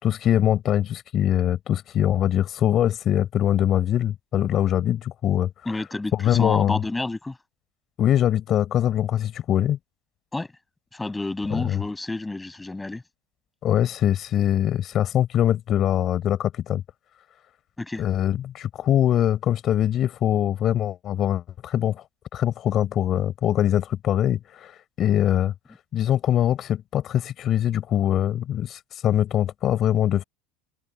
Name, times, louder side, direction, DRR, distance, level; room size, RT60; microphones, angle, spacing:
voice 1, 0.0-5.5 6.1-6.8 8.0-9.8 11.5-11.8 13.6-16.8 18.0-22.0 22.3-25.5 25.9-30.2, left 11 dB, 40° left, 4.0 m, -23 dB
voice 2, 5.7-7.4 10.3-10.5 10.9-13.0 17.8-18.0, left 2 dB, 10° left, 6.9 m, -29 dB
cardioid pair, 150°, 0 cm